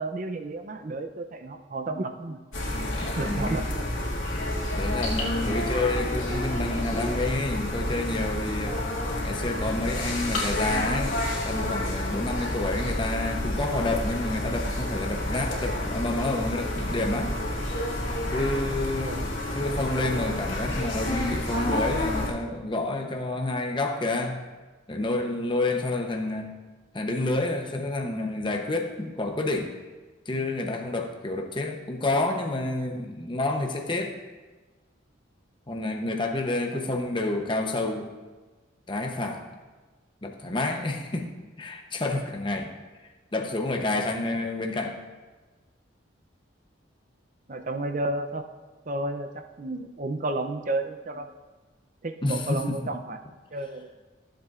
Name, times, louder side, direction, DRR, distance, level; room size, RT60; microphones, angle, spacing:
voice 1, 0.0-2.4 3.0-3.9 19.0-19.3 36.7-36.9 47.5-48.4 48.8-51.3 52.0-53.2 53.5-53.9, right 2 dB, 40° right, 7 dB, 0.5 m, -32 dB
sound 1, 2.5-22.3, left 1 dB, 90° left, 2.3 m, -29 dB
voice 2, 3.3-3.6 4.8-8.8 9.2-11.2 11.4-17.4 18.3-24.4 24.9-26.5 26.9-29.8 30.3-34.2 35.7-38.1 38.9-39.4 40.2-41.3 41.6-42.7 43.3-45.0 52.2-52.8, left 2 dB, 25° left, 3 dB, 0.8 m, -29 dB
15.0 x 7.5 x 2.5 m, 1.3 s
head